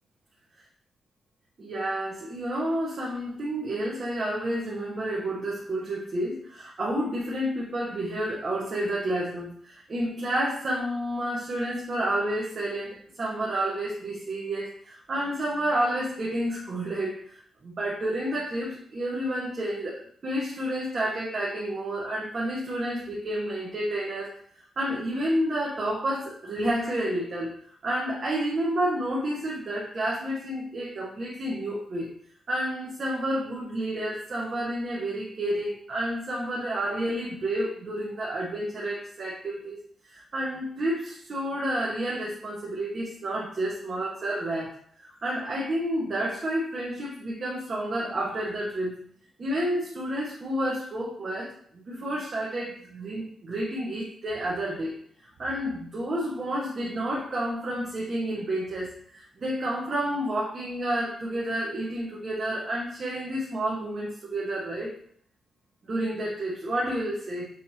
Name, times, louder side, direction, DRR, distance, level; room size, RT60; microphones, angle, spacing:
voice 1, 1.6-24.4 24.8-27.5 27.8-32.1 32.5-39.8 40.1-49.0 49.4-64.9 65.9-67.5, right 1 dB, 35° right, -5 dB, 0.9 m, -30 dB
6.3 x 2.6 x 2.8 m, 0.62 s
wide cardioid pair, 140°, 0 cm